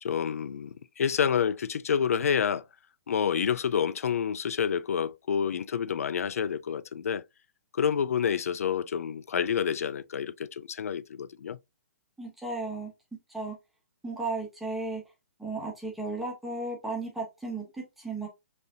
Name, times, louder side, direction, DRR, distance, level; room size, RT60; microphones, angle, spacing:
voice 1, 0.0-2.6 3.1-7.2 7.8-11.6, left 7 dB, 80° left, 0.4 m, -28 dB
voice 2, 12.2-12.9 13.3-13.6 14.0-15.0 15.4-18.3, right 3 dB, ahead, 1.2 m, -34 dB
5.1 x 3.3 x 2.5 m
hypercardioid pair, 160°, 8 cm